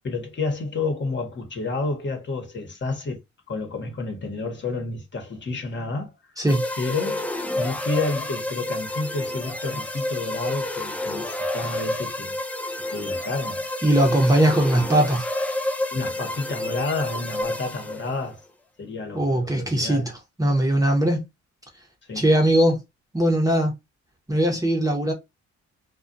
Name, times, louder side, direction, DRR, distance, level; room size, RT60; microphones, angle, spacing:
voice 1, 0.0-3.2 3.5-6.1 6.8-7.3 7.6-12.4 12.9-13.6 15.9-18.4 18.8-20.1 22.1-22.2, left 3 dB, 40° left, 1.0 m, -30 dB
sound 1, 6.5-18.2, left 1 dB, 5° left, 0.4 m, -29 dB
voice 2, 13.8-15.3 19.1-20.1 20.4-21.2 22.1-22.8 23.1-23.7 24.3-25.1, right 1 dB, 10° right, 0.9 m, -20 dB
2.3 x 2.3 x 2.6 m
cardioid pair, 90°, 30 cm